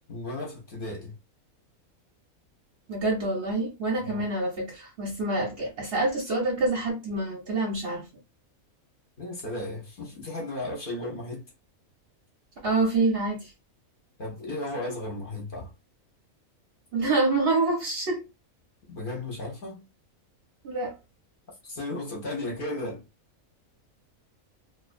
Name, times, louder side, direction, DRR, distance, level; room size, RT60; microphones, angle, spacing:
voice 1, 0.1-1.1 4.0-4.3 9.2-11.5 14.2-15.7 18.9-19.8 21.6-23.0, left 2 dB, 50° left, 0.7 m, -35 dB
voice 2, 2.9-8.1 12.6-13.5 16.9-18.2 20.6-20.9, right 2 dB, 55° right, 0.7 m, -26 dB
2.4 x 2.1 x 2.4 m
omnidirectional pair, 1.5 m